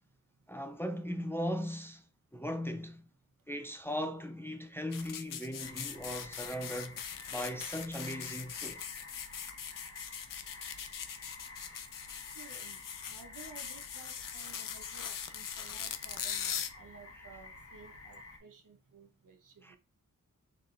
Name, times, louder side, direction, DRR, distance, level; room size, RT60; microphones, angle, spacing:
voice 1, 0.5-2.0 2.3-3.1 3.5-8.8 11.7-11.8 19.6-19.8, equal, 5° left, 0.5 m, -38 dB
sound 1, 4.9-16.7, left 8 dB, 80° left, 0.6 m, -41 dB
sound 2, 5.6-18.4, left 3 dB, 45° left, 1.5 m, -51 dB
voice 2, 12.3-19.8, right 4 dB, 75° right, 1.0 m, -55 dB
4.1 x 3.7 x 3.4 m
wide cardioid pair, 110°, 32 cm